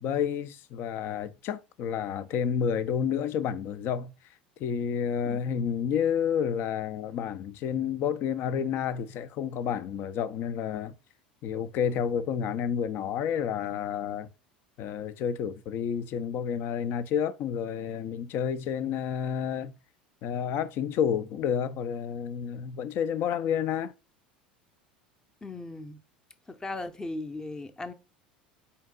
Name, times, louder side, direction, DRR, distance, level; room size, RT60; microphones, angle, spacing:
voice 1, 0.0-4.1 4.6-10.9 11.4-14.3 14.8-19.7 20.2-23.9, left 8 dB, 50° left, 0.5 m, -30 dB
voice 2, 5.2-5.6 25.4-26.0 26.5-27.9, left 2 dB, 15° left, 0.7 m, -38 dB
4.5 x 2.8 x 3.6 m
hypercardioid pair, 75°, 5 cm